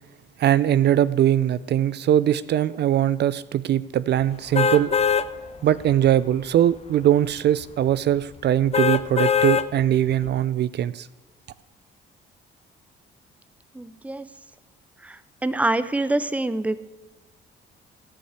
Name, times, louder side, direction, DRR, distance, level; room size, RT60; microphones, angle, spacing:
voice 1, 0.4-5.0 5.6-11.1, right 11 dB, 60° right, 18 dB, 0.4 m, -21 dB
sound 1, 4.5-5.3 5.8-5.9 8.7-9.7 10.2-10.3, left 7 dB, 30° left, 0.5 m, -21 dB
voice 2, 13.7-14.3 15.0-16.8, right 2 dB, 5° right, 15 dB, 0.6 m, -25 dB
15.0 x 5.4 x 8.2 m, 1.2 s
cardioid pair, 90°, 20 cm